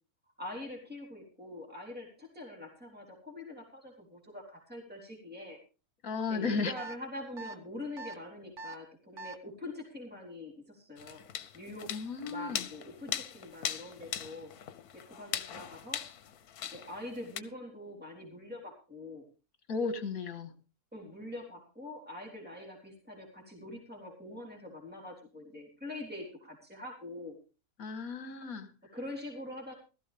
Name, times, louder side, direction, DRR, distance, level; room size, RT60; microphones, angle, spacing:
voice 1, 0.4-5.6 6.3-11.2 11.5-14.5 14.9-16.0 16.7-19.3 20.9-27.4 28.8-29.7, left 1 dB, 5° right, 0 dB, 3.8 m, -44 dB
voice 2, 6.0-6.7 11.9-12.6 19.7-20.5 27.8-28.7, left 4 dB, 70° left, 9 dB, 2.0 m, -34 dB
sound 1, 6.8-7.0 7.4-7.5 8.0-8.2 8.6-8.7 9.2-9.3, right 2 dB, 50° right, 1.7 m, -42 dB
sound 2, 11.0-17.4, left 9 dB, 85° left, 1.4 m, -40 dB
16.0 x 14.0 x 3.5 m, 0.32 s
omnidirectional pair, 1.6 m